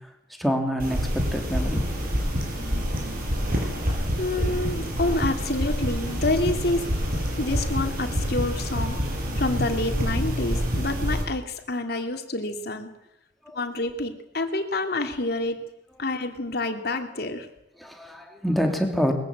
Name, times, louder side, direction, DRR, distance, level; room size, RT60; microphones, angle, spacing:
voice 1, 0.4-1.8 4.4-4.6 13.5-13.6 17.8-19.1, equal, ahead, 3 dB, 3.0 m, -26 dB
sound 1, 0.8-11.2, equal, 55° right, 6.9 m, -27 dB
voice 2, 4.2-9.0 9.4-12.9 13.5-15.6 16.0-17.5, left 2 dB, 60° left, 5 dB, 2.7 m, -28 dB
22.0 x 14.5 x 8.7 m, 0.90 s
head